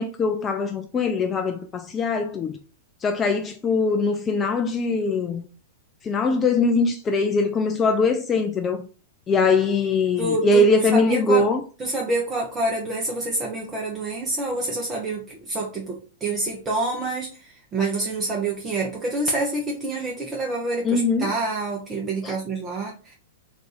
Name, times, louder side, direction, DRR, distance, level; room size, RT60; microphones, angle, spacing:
voice 1, 0.0-2.6 3.0-5.4 6.0-8.9 9.3-11.6 20.8-21.3 22.2-22.4, left 3 dB, 20° left, 0.3 m, -22 dB
voice 2, 10.2-11.4 11.8-23.1, right 2 dB, 20° right, 0.6 m, -27 dB
2.5 x 2.4 x 3.8 m
figure-of-eight pair, 100°, 0 cm